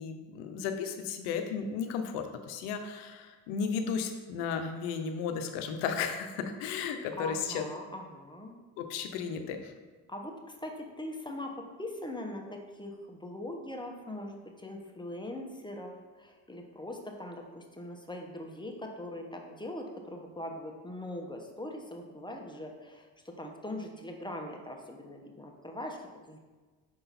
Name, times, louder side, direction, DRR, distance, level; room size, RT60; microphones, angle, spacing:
voice 1, 0.0-7.6 8.8-9.7, left 6 dB, 85° left, 6 dB, 0.7 m, -34 dB
voice 2, 7.2-8.6 10.1-15.9 16.2-26.4, left 1 dB, 10° left, 1 dB, 1.0 m, -41 dB
6.0 x 3.8 x 4.2 m, 1.3 s
hypercardioid pair, 55°, 49 cm